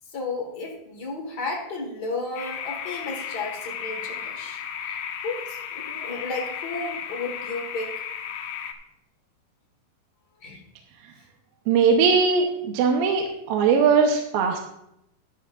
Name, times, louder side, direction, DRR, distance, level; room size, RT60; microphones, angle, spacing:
voice 1, 0.1-5.0 5.2-8.0 10.4-10.6, left 3 dB, 60° left, -1 dB, 1.0 m, -33 dB
sound 1, 2.4-8.7, left 8 dB, 85° left, 1.8 m, -34 dB
voice 2, 11.7-14.6, right 5 dB, 75° right, 2 dB, 2.4 m, -20 dB
12.5 x 11.0 x 2.5 m, 0.80 s
omnidirectional pair, 4.7 m